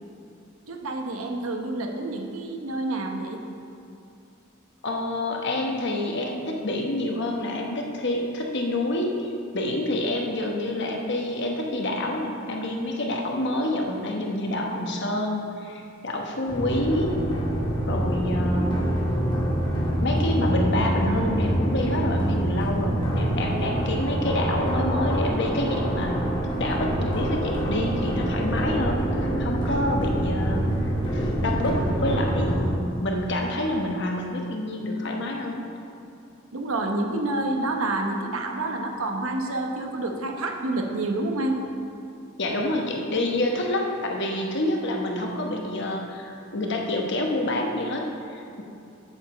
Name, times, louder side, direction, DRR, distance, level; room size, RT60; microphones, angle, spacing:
voice 1, 0.7-3.4 36.5-41.6, right 2 dB, 85° right, 2 dB, 1.0 m, -28 dB
voice 2, 4.8-17.2 17.9-18.9 20.0-26.2 26.6-29.0 29.4-30.7 31.1-35.7 42.4-48.6, left 1 dB, 60° left, 1 dB, 1.1 m, -27 dB
sound 1, 16.5-32.7, right 1 dB, 25° left, 1.3 m, -25 dB
8.0 x 5.1 x 7.1 m, 2.6 s
head